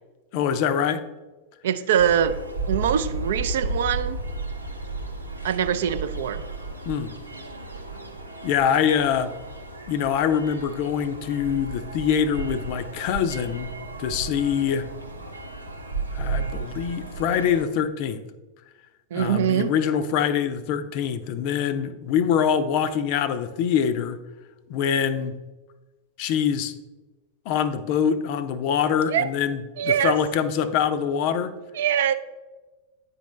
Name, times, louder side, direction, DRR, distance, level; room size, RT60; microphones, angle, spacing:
voice 1, 0.3-1.0 6.9-7.1 8.4-9.3 9.9-13.7 14.0-14.9 16.1-18.2 19.1-24.2 24.7-25.3 26.2-26.7 27.5-31.5, left 8 dB, 45° left, 12 dB, 0.4 m, -24 dB
voice 2, 1.6-2.4 2.7-4.2 5.4-6.4 19.1-19.7 29.1-29.3 29.8-30.1 31.8-32.1, right 9 dB, 60° right, 12 dB, 0.3 m, -23 dB
sound 1, 2.0-17.6, right 3 dB, 85° right, 0.7 m, -34 dB
9.5 x 4.1 x 3.2 m, 1.2 s
figure-of-eight pair, 90°, 0 cm